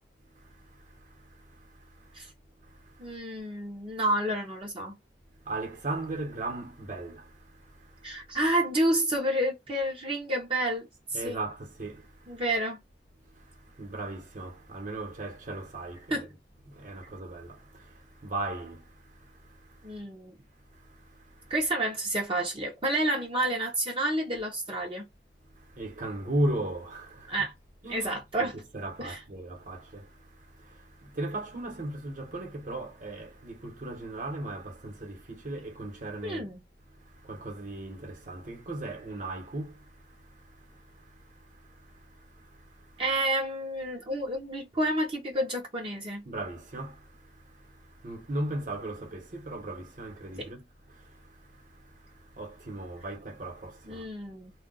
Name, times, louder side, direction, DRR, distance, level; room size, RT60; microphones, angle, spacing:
voice 1, 0.3-2.3 2.6-3.2 5.4-8.2 11.1-12.4 13.3-16.3 16.7-20.0 20.7-21.5 25.5-27.3 27.8-36.5 36.9-43.0 46.2-54.1, right 2 dB, 50° right, 1.1 m, -38 dB
voice 2, 3.0-5.0 8.0-11.4 12.3-12.8 16.1-16.3 19.8-20.3 21.5-25.0 27.3-27.5 27.9-28.5 29.0-29.2 36.2-36.6 43.0-46.2 50.4-50.5 53.9-54.5, right 1 dB, 30° right, 0.7 m, -29 dB
2.3 x 2.2 x 3.8 m
head